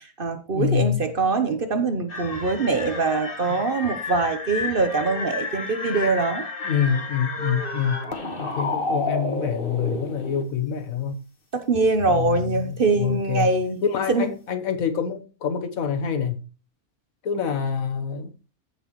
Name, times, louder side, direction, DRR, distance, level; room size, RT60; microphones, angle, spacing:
voice 1, 0.0-6.4 11.5-13.8 14.1-14.3, right 3 dB, 45° right, 1.0 m, -23 dB
voice 2, 0.5-1.0 6.6-8.1 8.4-11.1 12.1-13.5 13.8-16.4 17.2-18.3, left 7 dB, 70° left, 1.5 m, -26 dB
sound 1, 2.1-10.4, left 3 dB, 40° left, 1.7 m, -31 dB
15.0 x 6.1 x 3.0 m
omnidirectional pair, 1.5 m